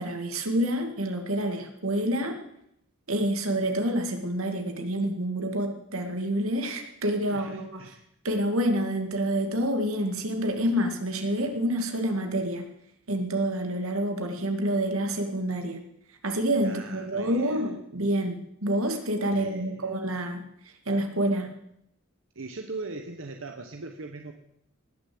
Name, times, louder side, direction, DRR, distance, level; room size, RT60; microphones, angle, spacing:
voice 1, 0.0-2.4 3.1-7.8 8.2-12.7 13.1-15.8 16.2-20.4 20.9-21.5, right 1 dB, 85° right, 5 dB, 2.2 m, -28 dB
voice 2, 7.3-8.0 16.6-17.7 19.3-19.9 22.3-24.3, right 3 dB, 65° right, 4 dB, 1.1 m, -40 dB
18.5 x 7.0 x 7.8 m, 0.78 s
head